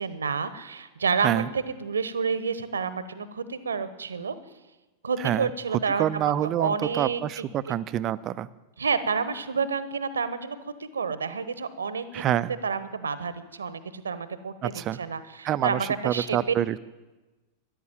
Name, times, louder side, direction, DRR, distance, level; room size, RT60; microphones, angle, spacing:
voice 1, 0.0-4.4 5.0-7.8 8.8-12.2 12.6-14.7 15.0-16.5, right 5 dB, 70° right, 14 dB, 1.0 m, -29 dB
voice 2, 5.2-5.5 6.0-8.5 12.1-12.5 14.6-15.0 15.4-16.8, right 12 dB, 35° right, 15 dB, 0.6 m, -27 dB
14.0 x 11.0 x 9.0 m, 1.1 s
figure-of-eight pair, 90°, 0 cm